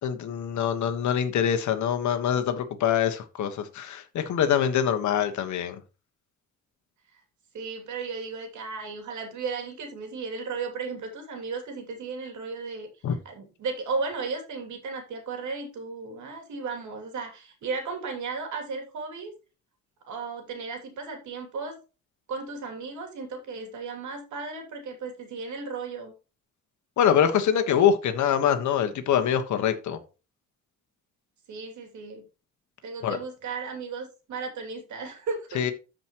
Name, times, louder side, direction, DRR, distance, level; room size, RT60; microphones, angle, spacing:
voice 1, 0.0-5.7 13.0-13.1 27.0-30.0 33.0-33.2 35.5-35.7, left 8 dB, 70° left, 1.4 m, -24 dB
voice 2, 7.5-19.3 20.1-21.8 22.3-26.1 31.5-32.3 32.8-35.7, right 4 dB, 75° right, 2.8 m, -35 dB
13.5 x 5.2 x 3.0 m
cardioid pair, 90°, 30 cm